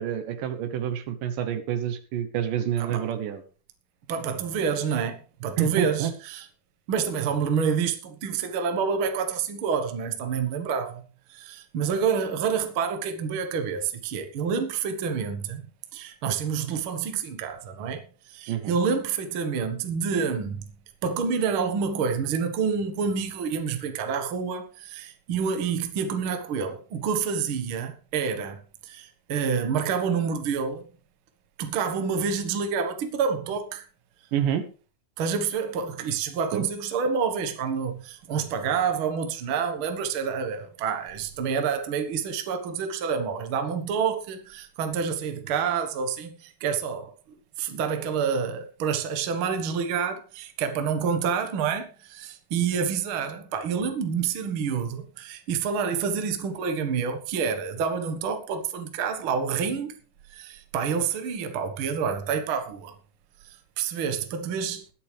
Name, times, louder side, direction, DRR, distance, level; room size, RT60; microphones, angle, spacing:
voice 1, 0.0-3.4 5.6-6.1 18.5-18.8 34.3-34.6 36.5-36.7, right 10 dB, 75° right, 2.7 m, -28 dB
voice 2, 2.8-3.1 4.1-6.4 6.9-11.0 11.3-15.7 15.9-20.7 21.0-30.9 31.6-33.8 35.2-60.0 60.3-62.9 63.4-64.8, right 6 dB, 50° right, 1.7 m, -28 dB
20.5 x 8.5 x 3.4 m
omnidirectional pair, 4.0 m